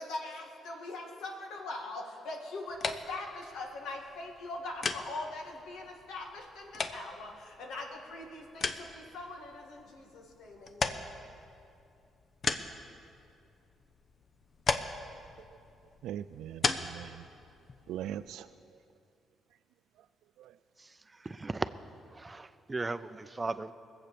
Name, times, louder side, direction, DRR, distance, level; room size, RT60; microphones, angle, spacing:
voice 1, 0.0-11.0, left 2 dB, 80° left, 1 dB, 2.1 m, -42 dB
sound 1, 2.7-18.4, left 4 dB, 45° left, 0.8 m, -39 dB
voice 2, 16.0-17.3 17.9-18.8 20.4-20.6, right 11 dB, 85° right, 12 dB, 0.3 m, -41 dB
voice 3, 20.8-21.7 22.1-23.7, right 3 dB, 20° right, 13 dB, 0.6 m, -37 dB
21.0 x 8.1 x 6.8 m, 2.6 s
cardioid pair, 90°, 0 cm